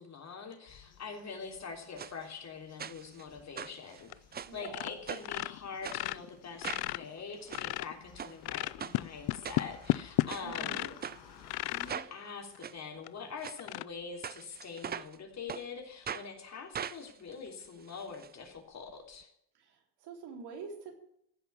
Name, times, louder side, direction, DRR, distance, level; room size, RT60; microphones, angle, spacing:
voice 1, 0.0-4.1 4.5-10.9 11.7-19.3, left 5 dB, 45° left, 3 dB, 3.3 m, -44 dB
sound 1, 0.7-11.9, left 7 dB, 90° left, 5.1 m, -58 dB
sound 2, 2.0-2.1 2.8-3.2 3.6-4.6 5.1-5.4 5.8-6.0 6.6-6.9 7.3-7.6 8.2-8.4 8.8-9.0 9.4-9.9 10.3-10.5 11.0-11.2 11.9-12.1 12.6-12.8 13.4-13.6 14.2-15.2 15.5-15.6 16.1-16.3 16.7-18.3 18.6-18.7 18.9-19.0, right 8 dB, 25° right, 0.5 m, -40 dB
sound 3, 4.0-4.4 4.6-5.0 5.2-8.0 8.4-11.1 11.4-11.9 12.5-12.6 13.1-13.2 13.6-13.8, left 18 dB, 70° left, 0.5 m, -33 dB
voice 2, 4.5-4.9 10.4-10.9 19.5-20.9, right 5 dB, 80° right, 2 dB, 3.8 m, -46 dB
15.5 x 6.0 x 9.5 m, 0.74 s
cardioid pair, 115°, 39 cm